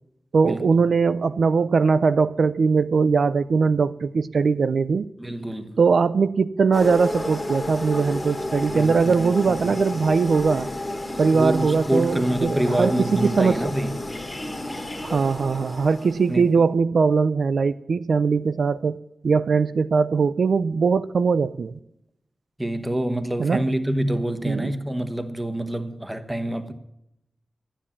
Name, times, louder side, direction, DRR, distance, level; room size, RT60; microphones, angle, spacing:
voice 1, 0.3-5.1 5.8-10.7 11.2-13.6 15.0-19.0 19.2-21.8 23.4-23.6 24.5-24.7, right 5 dB, 65° right, 0.4 m, -21 dB
voice 2, 5.2-5.8 8.7-9.8 11.3-14.1 16.3-16.5 22.6-26.7, right 1 dB, 10° right, 1.2 m, -26 dB
sound 1, 6.7-16.5, left 1 dB, 20° left, 1.7 m, -31 dB
13.0 x 10.0 x 7.2 m
wide cardioid pair, 155°, 0 cm